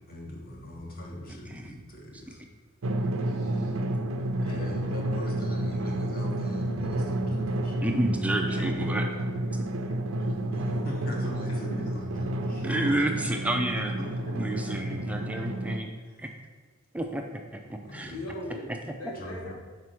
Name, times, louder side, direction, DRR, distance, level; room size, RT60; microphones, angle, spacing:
voice 1, 0.1-2.4 4.4-7.9 10.4-13.0 16.0-16.2 17.8-18.4 19.1-19.5, left 1 dB, 45° left, 0 dB, 1.2 m, -41 dB
Drum, 2.8-15.8, right 1 dB, 65° right, 0.5 m, -30 dB
voice 2, 3.2-3.7 4.4-4.7 8.5-8.7 9.5-9.6 9.9-10.3 14.2-14.3 18.1-19.5, left 1 dB, 85° left, -1 dB, 1.5 m, -41 dB
voice 3, 7.8-9.1 12.6-13.9 14.3-15.9 16.2-16.3 16.9-17.2 17.5-18.1, right 1 dB, 5° right, 3 dB, 0.4 m, -30 dB
5.1 x 4.8 x 5.9 m, 1.4 s
head